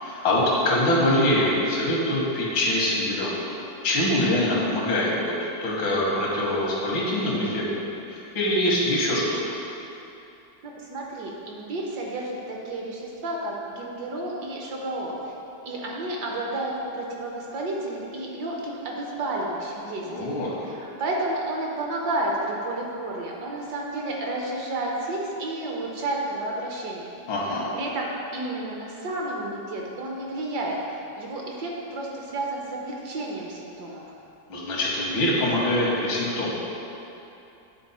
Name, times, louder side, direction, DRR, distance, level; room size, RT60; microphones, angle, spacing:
voice 1, 0.0-3.3 3.8-9.4 20.1-20.5 27.3-27.7 34.5-36.5, left 1 dB, 85° left, -4 dB, 2.0 m, -24 dB
voice 2, 10.6-15.3 15.6-20.4 20.6-27.1 27.5-30.8 31.2-34.0, right 2 dB, 65° right, -2 dB, 1.3 m, -31 dB
9.1 x 3.9 x 4.2 m, 2.8 s
omnidirectional pair, 2.1 m